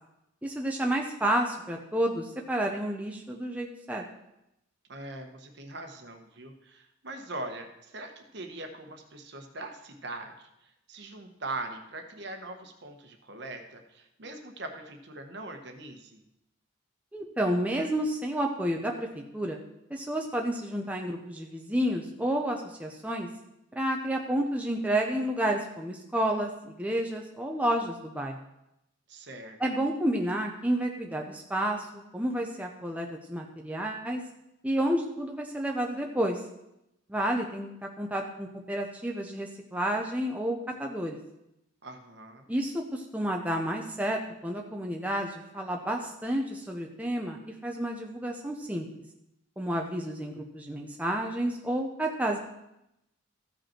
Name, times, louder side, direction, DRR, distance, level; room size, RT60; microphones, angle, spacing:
voice 1, 0.4-4.0 17.1-19.6 19.9-23.3 23.8-28.4 29.6-34.2 34.6-36.4 37.1-41.2 42.5-48.9 49.6-52.4, right 1 dB, 5° right, 0 dB, 0.6 m, -30 dB
voice 2, 4.9-10.3 10.9-16.2 29.1-29.6 41.8-42.5, right 2 dB, 55° right, 5 dB, 1.1 m, -41 dB
14.5 x 5.3 x 4.4 m, 0.86 s
head